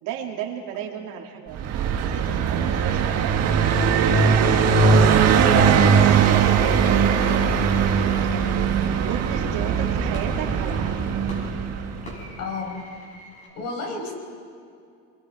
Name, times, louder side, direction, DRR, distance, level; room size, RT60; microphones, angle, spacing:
voice 1, 0.0-1.6 2.1-3.3 3.8-4.6 5.3-7.2 8.2-8.5 9.0-11.0, right 9 dB, 75° right, 0 dB, 3.1 m, -34 dB
Car passing by, 1.5-12.1, right 6 dB, 50° right, 1.7 m, -20 dB
sound 1, 10.1-13.5, equal, 20° left, 6.2 m, -43 dB
voice 2, 12.4-12.8 13.5-14.1, left 3 dB, 50° left, 1 dB, 5.2 m, -31 dB
29.0 x 22.0 x 4.7 m, 2.5 s
cardioid pair, 165°, 33 cm